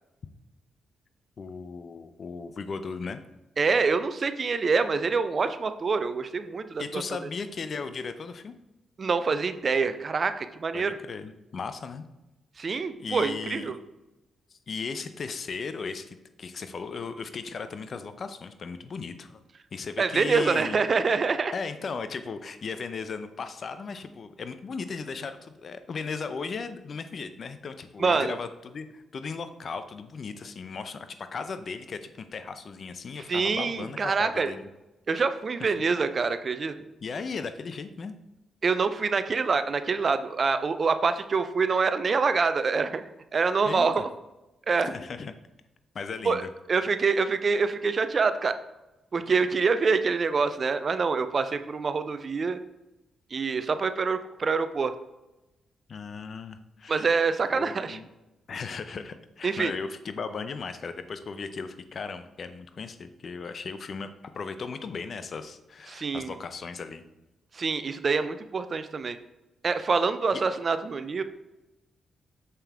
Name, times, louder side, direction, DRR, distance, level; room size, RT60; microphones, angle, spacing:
voice 1, 1.4-3.2 6.8-8.5 10.7-12.1 12.7-13.7 14.7-19.4 19.7-20.8 21.5-34.7 37.0-38.2 43.6-43.9 44.8-45.3 45.9-46.5 55.9-57.3 57.5-58.1 58.5-67.0 70.3-70.4, left 5 dB, 55° left, 10 dB, 0.6 m, -36 dB
voice 2, 3.6-7.0 9.0-11.0 12.6-13.8 20.0-21.5 28.0-28.3 33.3-34.5 35.1-36.7 38.6-43.0 43.3-44.1 44.7-44.9 46.2-46.4 46.7-48.5 49.1-52.6 53.3-54.9 56.9-58.0 59.4-59.7 65.9-66.3 67.5-69.2 69.6-71.2, right 4 dB, 50° right, 11 dB, 0.6 m, -26 dB
6.7 x 5.5 x 3.5 m, 0.98 s
supercardioid pair, 45°, 0 cm